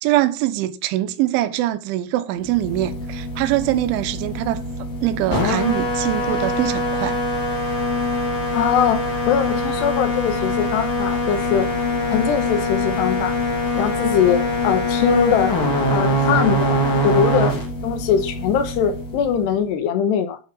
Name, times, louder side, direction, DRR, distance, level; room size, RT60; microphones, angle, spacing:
voice 1, 0.0-4.6 5.0-7.2, right 14 dB, 75° right, 3.2 m, -23 dB
sound 1, 2.4-19.6, left 1 dB, 45° left, 3.9 m, -23 dB
voice 2, 8.5-9.0 9.3-11.7 12.1-13.4 13.7-15.5 15.9-17.5 17.8-20.4, left 7 dB, 75° left, 2.7 m, -21 dB
11.5 x 6.4 x 5.3 m
omnidirectional pair, 5.8 m